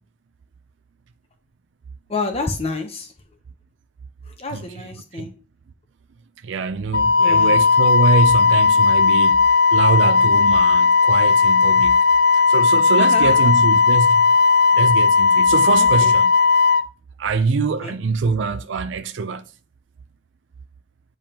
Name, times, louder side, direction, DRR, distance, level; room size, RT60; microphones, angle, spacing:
voice 1, 2.1-3.1 4.3-5.3 7.2-7.6 13.0-13.5 15.8-16.1 17.8-18.0, left 3 dB, 35° left, 0.8 m, -29 dB
voice 2, 4.5-4.9 5.1-5.3 6.4-12.1 12.3-14.2 14.7-16.3 17.2-19.5, right 4 dB, 85° right, 0.4 m, -24 dB
Wind instrument woodwind instrument, 6.9-16.8, left 4 dB, 55° left, 0.4 m, -15 dB
8.9 x 5.2 x 2.9 m
head